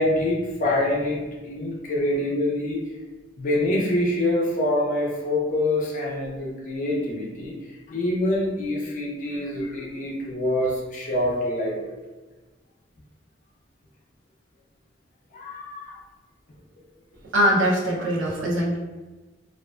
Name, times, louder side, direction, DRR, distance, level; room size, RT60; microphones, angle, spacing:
voice 1, 0.0-2.8 3.4-7.5 7.9-11.9 15.3-16.0, left 1 dB, 40° left, -2 dB, 0.5 m, -25 dB
voice 2, 17.3-18.8, equal, 85° right, -3 dB, 0.6 m, -22 dB
2.4 x 2.2 x 2.3 m, 1.2 s
head